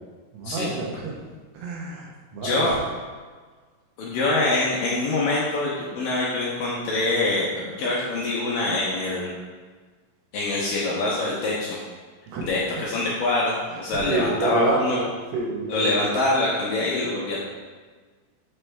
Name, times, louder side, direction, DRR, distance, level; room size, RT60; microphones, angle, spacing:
voice 1, 0.3-1.1 1.5-2.8 12.3-12.5 13.9-15.1 15.3-16.2, right 3 dB, 85° right, -1 dB, 3.1 m, -28 dB
voice 2, 2.4-2.8 4.0-9.3 10.3-11.8 12.4-15.0 15.7-17.4, left 2 dB, 70° left, -5 dB, 2.3 m, -24 dB
7.3 x 6.0 x 3.3 m, 1.5 s
omnidirectional pair, 4.5 m